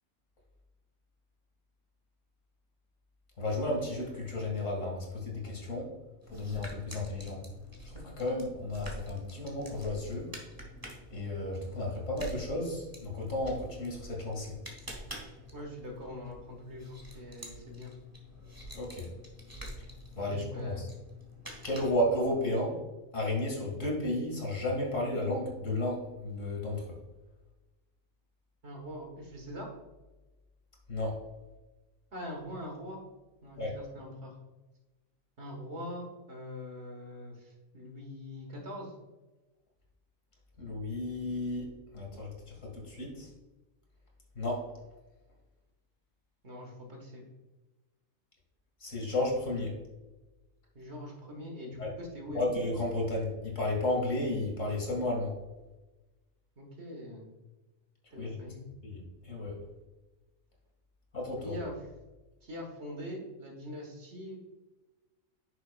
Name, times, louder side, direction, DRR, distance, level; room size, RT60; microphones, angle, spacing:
voice 1, 3.4-5.9 6.3-7.4 7.8-10.3 11.1-14.5 18.7-19.1 20.1-20.9 21.6-22.8 23.1-27.0 30.9-31.2 33.6-33.7 40.6-41.7 41.9-42.3 42.6-43.3 44.4-44.6 48.8-49.7 51.8-51.9 52.3-55.3 58.2-58.4 58.8-59.6 61.1-61.5, left 1 dB, 65° left, -1 dB, 2.3 m, -33 dB
sound 1, 6.2-22.3, equal, 15° right, 1.4 m, -47 dB
voice 2, 15.5-17.9 20.2-20.8 28.6-29.7 32.1-33.0 33.4-34.4 35.4-38.9 46.4-47.2 50.7-52.5 56.6-57.3 58.1-58.7 61.4-61.8 62.4-64.4, left 1 dB, 50° right, 1 dB, 1.7 m, -43 dB
9.8 x 6.8 x 2.3 m, 1.1 s
omnidirectional pair, 1.4 m